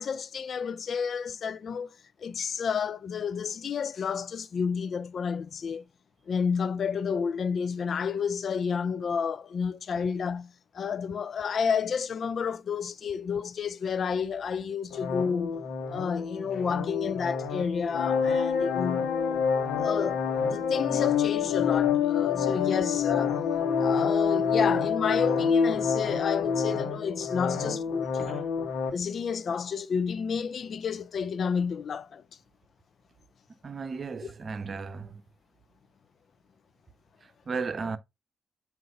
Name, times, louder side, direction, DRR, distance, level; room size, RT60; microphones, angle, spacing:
voice 1, 0.0-1.9 2.2-5.8 6.3-15.5 15.9-19.1 19.8-23.4 23.8-28.4 28.9-32.2, left 6 dB, 60° left, 0.4 m, -30 dB
sound 1, 14.9-28.9, left 6 dB, 75° left, 1.1 m, -27 dB
voice 2, 33.6-35.2 37.5-38.0, right 4 dB, 45° right, 0.8 m, -34 dB
7.6 x 2.7 x 5.1 m
hypercardioid pair, 40°, 0 cm